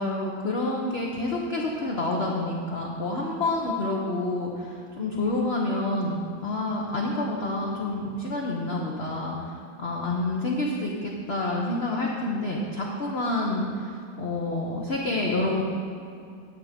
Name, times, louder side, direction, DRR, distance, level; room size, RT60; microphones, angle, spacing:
voice 1, 0.0-15.6, left 2 dB, 45° left, -2 dB, 1.0 m, -28 dB
9.9 x 7.5 x 5.1 m, 2.5 s
omnidirectional pair, 2.0 m